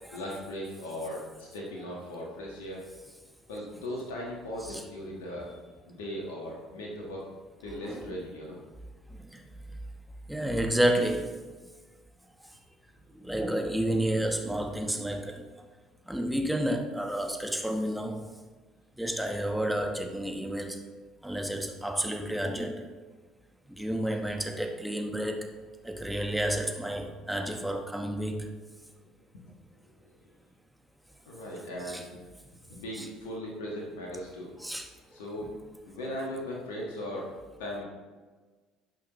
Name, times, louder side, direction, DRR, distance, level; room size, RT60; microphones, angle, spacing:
voice 1, 0.1-2.9 3.5-5.5 5.9-7.3 7.6-8.6 24.3-24.5 31.3-32.1 32.7-34.5 35.1-35.5 35.8-37.3 37.6-37.8, left 1 dB, 80° left, -2 dB, 1.4 m, -38 dB
voice 2, 10.3-11.4 13.2-15.4 16.1-18.2 19.0-20.8 21.2-22.8 23.7-25.5 25.8-28.5 31.8-32.0 33.0-33.1 34.6-34.9, right 1 dB, 5° right, 3 dB, 1.2 m, -30 dB
12.5 x 5.6 x 3.0 m, 1.3 s
hypercardioid pair, 65°, 0 cm